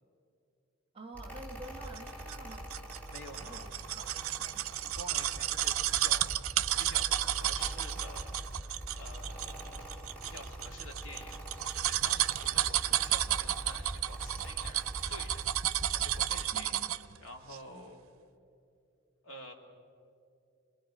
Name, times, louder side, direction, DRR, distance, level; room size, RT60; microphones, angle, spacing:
voice 1, 0.9-2.7 3.4-5.0 16.5-16.9 17.7-17.9, right 2 dB, 25° right, 4 dB, 1.3 m, -50 dB
Mechanical fan, 1.1-16.5, right 1 dB, 5° left, 2.0 m, -43 dB
sound 1, 2.0-17.1 17.5-17.6, right 13 dB, 90° right, 0.5 m, -32 dB
voice 2, 3.1-3.7 4.8-6.3 6.8-8.4 8.9-16.8 17.2-18.0 19.2-19.5, left 1 dB, 80° left, 2 dB, 2.3 m, -49 dB
Gurgling / Engine, 8.7-15.5, equal, 30° left, 5.5 m, -64 dB
27.0 x 21.0 x 5.1 m, 2.5 s
head